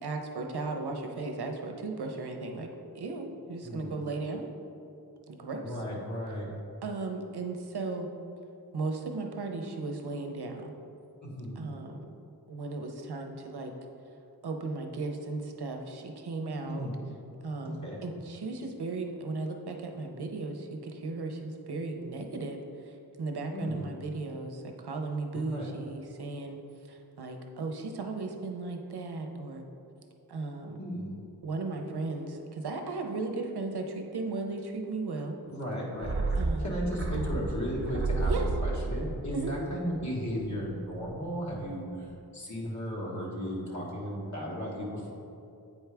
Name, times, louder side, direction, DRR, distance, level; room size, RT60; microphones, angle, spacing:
voice 1, 0.0-2.7 2.9-4.5 5.3-5.6 6.8-8.1 8.7-10.7 11.6-12.1 12.5-13.7 14.4-16.9 17.4-22.6 23.2-26.6 26.9-29.6 30.3-30.8 31.4-35.4 36.3-36.7 38.2-38.5 39.3-39.5, right 3 dB, 80° right, 3 dB, 0.7 m, -36 dB
voice 2, 3.6-4.0 5.6-6.5 11.2-11.6 16.7-17.0 17.6-18.0 23.5-23.9 25.3-25.7 30.8-31.1 35.5-38.3 38.6-42.1 42.3-45.1, equal, 45° left, -4 dB, 1.5 m, -35 dB
sound 1, 36.0-40.6 40.9-41.0, right 3 dB, 35° right, 0.8 m, -32 dB
8.4 x 4.6 x 3.4 m, 2.6 s
wide cardioid pair, 80°, 39 cm